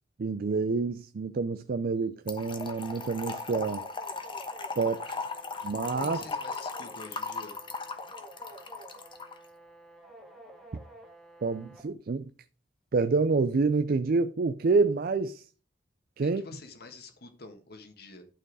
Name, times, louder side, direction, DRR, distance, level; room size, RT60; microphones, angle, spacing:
voice 1, 0.2-3.8 4.8-5.1 5.6-6.2 11.4-12.3 12.9-15.4 16.2-16.4, right 4 dB, 55° right, 0.4 m, -27 dB
Trickle dribble / Fill (with liquid), 2.3-9.4, left 4 dB, 30° left, 1.0 m, -37 dB
sound 1, 2.5-11.8, right 1 dB, ahead, 1.6 m, -51 dB
voice 2, 6.0-7.5 16.2-18.2, left 2 dB, 60° left, 1.6 m, -47 dB
11.5 x 4.6 x 4.7 m
head